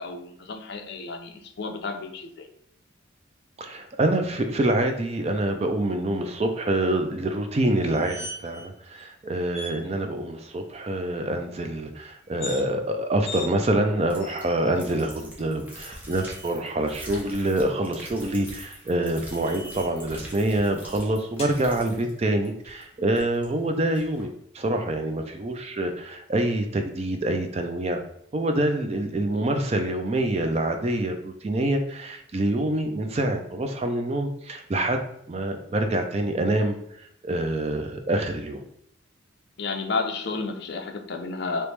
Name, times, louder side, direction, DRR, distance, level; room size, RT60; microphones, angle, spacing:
voice 1, 0.0-2.5 9.8-10.0 21.7-21.8 29.3-29.5 39.6-41.7, left 3 dB, 55° left, 5 dB, 0.4 m, -32 dB
voice 2, 3.6-24.3 24.5-28.0 28.3-35.0 35.3-38.6, right 1 dB, 30° right, 5 dB, 0.3 m, -26 dB
sound 1, 7.8-8.7 9.0-9.1 9.5-9.8 12.2-12.6 13.2-13.5 14.2-14.8 15.7-16.5 18.4-20.0 21.4-21.6, left 1 dB, 30° left, 1.0 m, -40 dB
sound 2, 14.1-23.5 23.9-24.3, equal, 10° right, 0.7 m, -44 dB
3.1 x 3.0 x 3.2 m, 0.72 s
head